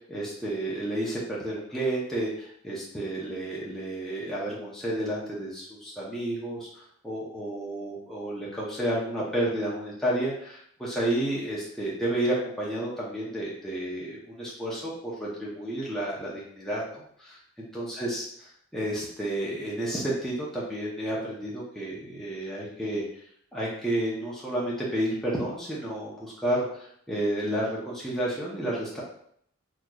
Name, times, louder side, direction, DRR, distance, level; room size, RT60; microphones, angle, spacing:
voice 1, 0.1-17.4 17.7-18.2 18.7-23.0 23.5-29.0, right 1 dB, ahead, -7 dB, 0.7 m, -31 dB
4.2 x 3.0 x 2.3 m, 0.66 s
head